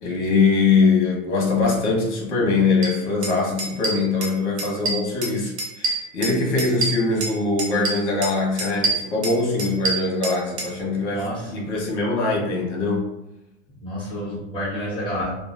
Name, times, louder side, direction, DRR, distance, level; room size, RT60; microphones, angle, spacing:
voice 1, 0.0-13.1, left 4 dB, 80° left, -2 dB, 1.3 m, -22 dB
sound 1, 2.8-2.9 3.2-3.3 3.6-4.3 4.6-5.3 5.6-7.3 7.6-8.3 8.6-10.7, right 3 dB, 50° right, 1.0 m, -26 dB
voice 2, 11.1-11.5 13.8-15.3, equal, 15° left, -9 dB, 1.4 m, -29 dB
3.0 x 2.4 x 2.5 m, 0.97 s
supercardioid pair, 145°, 34 cm